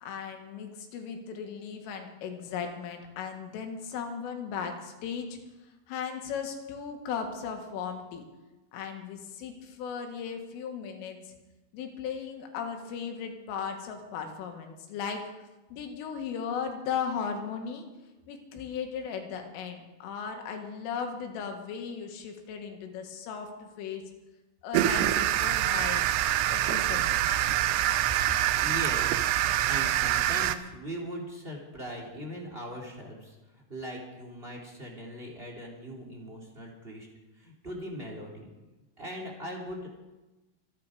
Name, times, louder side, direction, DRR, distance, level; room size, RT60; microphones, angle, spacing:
voice 1, 0.0-5.4 5.9-8.2 8.7-11.4 11.7-15.2 15.7-17.9 18.3-24.0 24.6-26.1 26.5-27.2, left 6 dB, 90° left, 4 dB, 4.4 m, -36 dB
sound 1, 24.7-30.6, right 13 dB, 90° right, 3.3 m, -25 dB
voice 2, 28.6-29.3 29.6-37.1 37.4-38.5 39.0-39.9, equal, 20° right, 0 dB, 1.8 m, -40 dB
25.0 x 10.5 x 5.0 m, 1.1 s
omnidirectional pair, 5.6 m